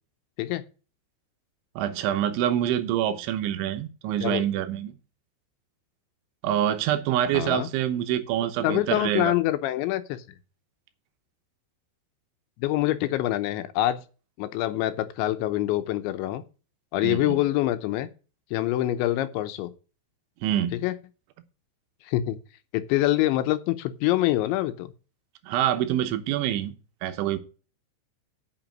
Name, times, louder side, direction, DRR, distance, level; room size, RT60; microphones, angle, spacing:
voice 1, 1.8-4.9 6.4-9.3 17.0-17.4 20.4-20.8 25.4-26.7 27.0-27.4, right 11 dB, 85° right, 3.3 m, -26 dB
voice 2, 7.3-7.7 8.6-10.2 12.6-14.0 14.4-16.4 16.9-18.1 18.5-19.7 20.8-20.9 22.1-22.4 22.7-24.9, left 15 dB, 80° left, 3.0 m, -25 dB
8.9 x 6.2 x 7.6 m
omnidirectional pair, 5.4 m